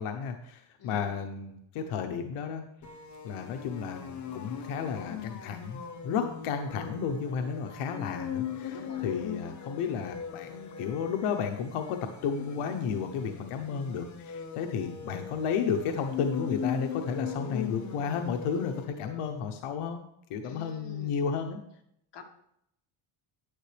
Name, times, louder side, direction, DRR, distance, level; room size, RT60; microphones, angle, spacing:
voice 1, 0.0-2.6 3.2-8.8 9.0-20.0 20.3-21.6, left 6 dB, 90° left, 5 dB, 1.0 m, -33 dB
voice 2, 0.8-1.3 8.7-9.2 20.4-21.2 22.1-22.2, left 3 dB, 55° left, 2 dB, 1.9 m, -47 dB
sound 1, 2.8-19.4, left 7 dB, 35° left, 1.0 m, -39 dB
9.9 x 9.6 x 3.3 m, 0.74 s
cardioid pair, 155°, 50 cm